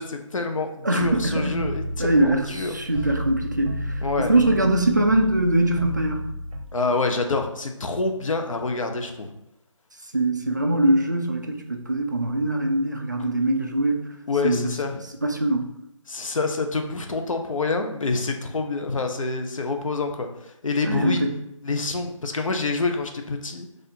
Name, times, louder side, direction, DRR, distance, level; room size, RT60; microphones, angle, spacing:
voice 1, 0.0-2.8 4.0-4.3 6.7-9.3 14.3-15.0 16.1-21.2 21.6-23.7, left 3 dB, 80° left, 4 dB, 0.6 m, -27 dB
voice 2, 0.8-1.7 2.0-6.2 10.1-14.0 14.4-14.7 15.2-15.7 20.8-21.3, right 1 dB, 35° right, 2 dB, 0.3 m, -22 dB
sound 1, 1.0-6.7, equal, 90° right, 0.6 m, -32 dB
4.1 x 2.5 x 2.7 m, 0.84 s
figure-of-eight pair, 175°, 17 cm